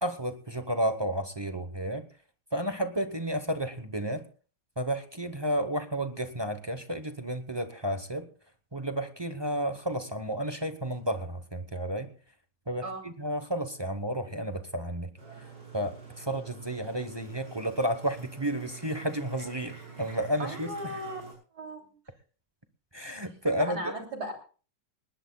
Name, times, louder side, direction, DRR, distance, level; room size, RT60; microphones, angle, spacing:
voice 1, 0.0-2.1 2.5-4.2 4.8-8.3 8.7-12.1 12.7-15.1 15.7-21.0 22.9-23.9, equal, 20° right, 8 dB, 0.7 m, -32 dB
sound 1, 15.2-21.3, right 5 dB, 85° right, 8.6 m, -47 dB
voice 2, 20.4-21.2 21.5-21.9 23.6-24.3, equal, 65° right, 2 dB, 3.5 m, -36 dB
19.5 x 19.0 x 2.3 m, 0.38 s
omnidirectional pair, 1.9 m